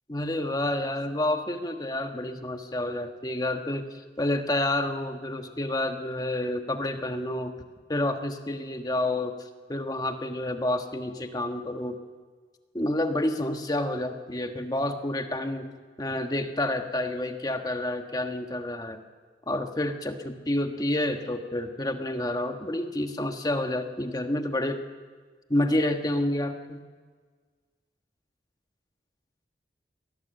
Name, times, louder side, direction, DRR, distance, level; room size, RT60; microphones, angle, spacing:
voice 1, 0.1-7.5 7.9-12.0 12.7-15.7 16.0-19.0 19.5-24.8 25.5-26.8, left 1 dB, 20° left, 6 dB, 1.4 m, -29 dB
23.0 x 17.5 x 7.8 m, 1.5 s
head